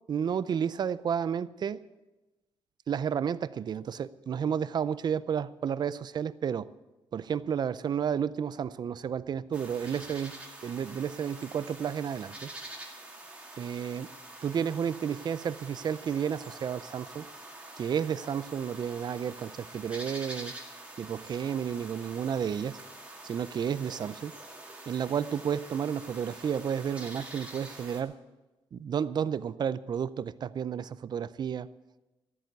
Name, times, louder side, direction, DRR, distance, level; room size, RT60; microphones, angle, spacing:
voice 1, 0.1-1.8 2.9-6.7 7.1-12.5 13.6-14.1 14.4-17.3 17.8-20.5 21.0-22.8 23.2-24.3 24.9-28.2 28.7-31.7, right 8 dB, 45° right, 16 dB, 0.5 m, -31 dB
sound 1, 9.5-28.0, right 2 dB, 10° right, 2.0 m, -46 dB
13.5 x 8.9 x 8.1 m, 1.1 s
wide cardioid pair, 140°, 10 cm